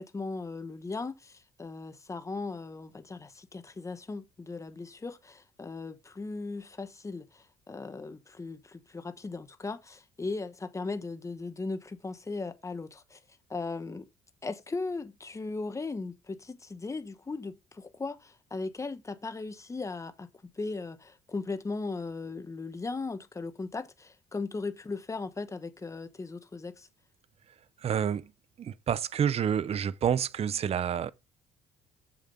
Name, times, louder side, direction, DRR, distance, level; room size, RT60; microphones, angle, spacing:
voice 1, 0.0-13.2 13.5-14.1 14.4-20.3 20.5-26.9, left 3 dB, 15° left, 1.1 m, -37 dB
voice 2, 27.8-28.3 28.6-31.1, right 8 dB, 35° right, 0.6 m, -28 dB
7.3 x 7.1 x 3.8 m
cardioid pair, 110°, 17 cm